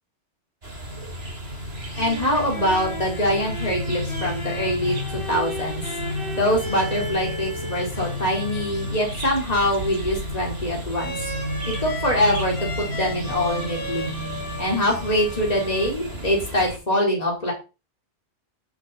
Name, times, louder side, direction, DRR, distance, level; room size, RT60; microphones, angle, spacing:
sound 1, 0.6-16.8, equal, 65° right, 3.5 m, -32 dB
sound 2, 1.7-16.3, left 1 dB, 50° left, 3.6 m, -36 dB
voice 1, 2.0-5.8 6.4-11.2 11.7-14.1 14.6-17.5, left 1 dB, 35° left, -1 dB, 4.5 m, -24 dB
17.0 x 10.0 x 4.3 m, 0.32 s
omnidirectional pair, 1.1 m